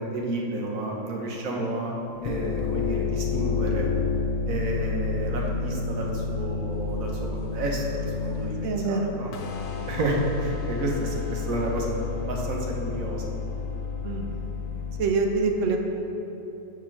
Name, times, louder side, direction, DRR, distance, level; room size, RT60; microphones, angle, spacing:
voice 1, 0.0-2.0 2.2-3.9 4.4-9.3 9.7-11.9 12.3-13.2 14.3-14.5, right 1 dB, 90° right, -1 dB, 1.4 m, -30 dB
sound 1, 2.1-15.0, left 5 dB, 80° left, 1.1 m, -30 dB
voice 2, 8.6-9.1 14.0-14.3 15.0-15.8, right 4 dB, 70° right, 3 dB, 1.0 m, -25 dB
6.3 x 4.7 x 5.9 m, 2.9 s
omnidirectional pair, 1.4 m